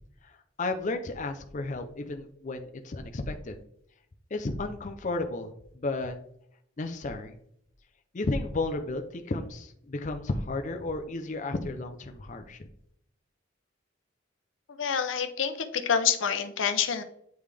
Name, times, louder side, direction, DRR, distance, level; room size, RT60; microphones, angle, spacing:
voice 1, 0.6-3.6 4.3-6.2 6.8-7.3 8.1-12.7, left 2 dB, 40° left, 5 dB, 0.5 m, -33 dB
voice 2, 14.7-17.0, left 7 dB, 80° left, 9 dB, 0.7 m, -27 dB
9.3 x 3.3 x 3.4 m, 0.72 s
head